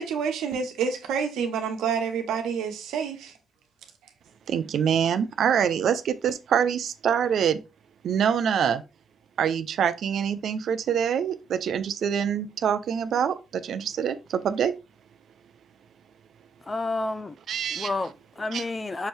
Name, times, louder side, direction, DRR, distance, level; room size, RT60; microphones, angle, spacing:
voice 1, 0.0-3.3, right 6 dB, 85° right, 0.9 m, -28 dB
voice 2, 4.5-7.6 8.0-8.8 9.4-14.7 17.5-17.9 18.5-18.6, right 8 dB, 65° right, 0.4 m, -25 dB
voice 3, 16.6-17.4 17.7-19.1, left 2 dB, 25° left, 0.4 m, -30 dB
5.7 x 2.6 x 3.2 m
cardioid pair, 90°, 0 cm